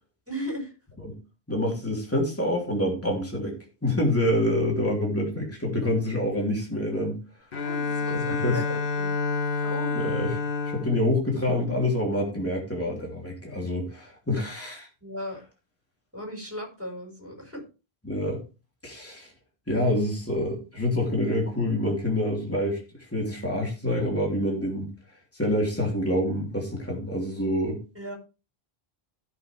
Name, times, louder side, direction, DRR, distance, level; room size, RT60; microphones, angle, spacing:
voice 1, 0.3-0.7 7.6-9.1 9.6-9.9 15.0-15.4 16.1-17.6 27.9-28.1, equal, 10° right, 0 dB, 5.0 m, -36 dB
voice 2, 1.5-7.2 8.1-8.6 9.9-10.4 10.6-14.9 18.0-18.4 18.8-19.3 19.7-24.9 25.3-27.8, left 1 dB, 15° left, -1 dB, 3.0 m, -27 dB
Bowed string instrument, 7.5-12.3, left 4 dB, 60° left, 1.2 m, -29 dB
15.5 x 6.2 x 3.4 m, 0.30 s
omnidirectional pair, 1.1 m